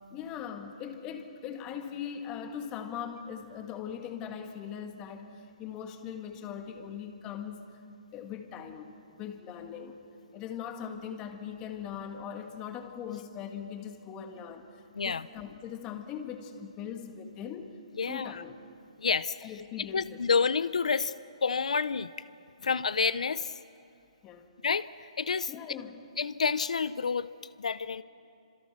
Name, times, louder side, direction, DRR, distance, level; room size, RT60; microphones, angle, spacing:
voice 1, 0.1-7.7 8.1-10.0 10.3-18.7 19.4-20.2 24.2-24.5 25.5-26.0, left 8 dB, 20° left, 5 dB, 1.8 m, -40 dB
voice 2, 14.9-15.3 18.0-18.4 19.0-19.5 19.8-21.1 21.4-22.3 22.6-23.6 24.6-25.5 26.2-27.3 27.6-28.0, left 5 dB, 85° left, 16 dB, 0.7 m, -29 dB
28.0 x 26.5 x 6.0 m, 2.7 s
hypercardioid pair, 165°, 4 cm